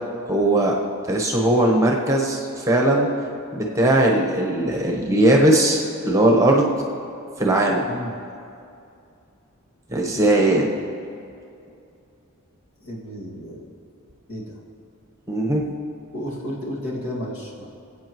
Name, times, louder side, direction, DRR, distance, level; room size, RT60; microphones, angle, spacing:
voice 1, 0.3-0.8 1.1-3.1 3.5-6.7 7.4-7.8 9.9-10.7 15.3-15.6, right 1 dB, 15° right, -1 dB, 1.1 m, -19 dB
voice 2, 12.8-13.6 14.3-14.6 16.1-17.7, equal, 70° left, -4 dB, 2.3 m, -32 dB
21.5 x 8.2 x 3.1 m, 2.5 s
head